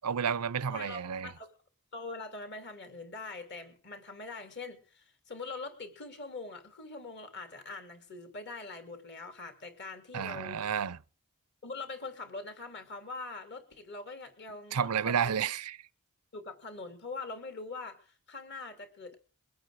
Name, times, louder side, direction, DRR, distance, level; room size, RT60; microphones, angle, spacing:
voice 1, 0.0-1.3 10.1-11.0 14.7-15.8, right 7 dB, 90° right, 0.6 m, -31 dB
voice 2, 0.7-1.5 1.9-10.6 11.6-15.4 16.3-19.2, left 3 dB, 50° left, 2.8 m, -43 dB
22.0 x 8.9 x 4.8 m
head